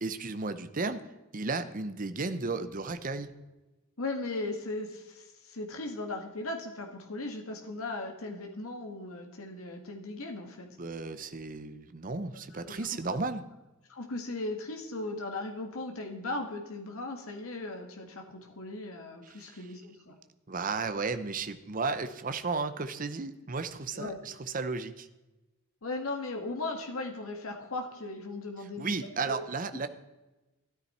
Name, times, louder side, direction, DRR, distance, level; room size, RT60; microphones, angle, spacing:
voice 1, 0.0-1.0 1.3-3.3 10.8-13.4 19.3-19.6 20.5-25.1 28.8-29.9, right 4 dB, 40° right, 10 dB, 0.7 m, -34 dB
voice 2, 4.0-10.7 12.5-13.0 13.9-20.2 23.9-24.2 25.8-28.9 29.3-29.4, left 2 dB, 75° left, 3 dB, 1.7 m, -37 dB
13.0 x 13.0 x 4.3 m, 1.1 s
head